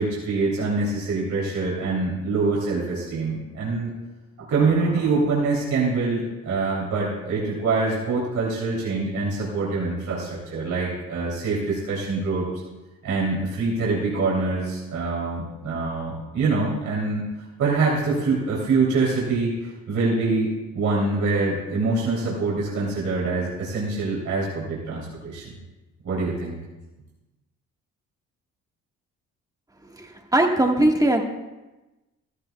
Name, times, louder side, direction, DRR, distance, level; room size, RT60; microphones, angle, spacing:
voice 1, 0.0-3.9 4.4-12.5 13.0-17.3 17.6-25.5 26.0-26.6, right 3 dB, 75° right, -6 dB, 3.2 m, -25 dB
voice 2, 30.0-31.2, right 1 dB, 10° right, 2 dB, 1.6 m, -20 dB
14.5 x 14.0 x 2.3 m, 1.1 s
cardioid pair, 90°, 30 cm